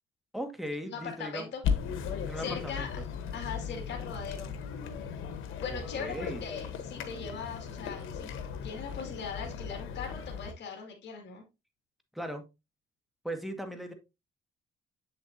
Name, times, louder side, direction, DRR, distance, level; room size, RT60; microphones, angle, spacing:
voice 1, 0.3-1.5 2.3-3.0 5.6-6.4 12.1-12.4 13.2-13.9, equal, ahead, 1.8 m, -38 dB
voice 2, 0.8-1.6 2.4-3.0 3.3-4.6 5.6-8.3 8.6-11.4, left 6 dB, 60° left, 2.4 m, -40 dB
sound 1, 1.6-10.5, left 6 dB, 85° left, 1.2 m, -37 dB
7.7 x 7.1 x 2.7 m
cardioid pair, 90°, 20 cm